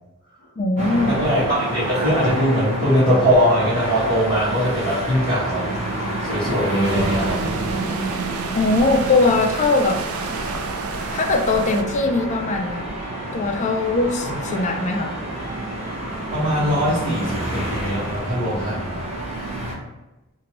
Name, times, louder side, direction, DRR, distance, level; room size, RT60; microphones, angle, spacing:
voice 1, 0.6-1.1 8.5-10.0 11.1-12.8 13.3-15.1, left 3 dB, 35° left, 5 dB, 0.3 m, -20 dB
sound 1, 0.8-19.7, right 1 dB, 30° right, 0.9 m, -28 dB
voice 2, 1.1-5.6 6.2-7.5 14.2-14.4 16.3-19.1, equal, 50° right, -13 dB, 1.3 m, -21 dB
sound 2, 6.8-11.8, right 4 dB, 85° right, 0.4 m, -30 dB
2.9 x 2.6 x 2.9 m, 1.0 s
head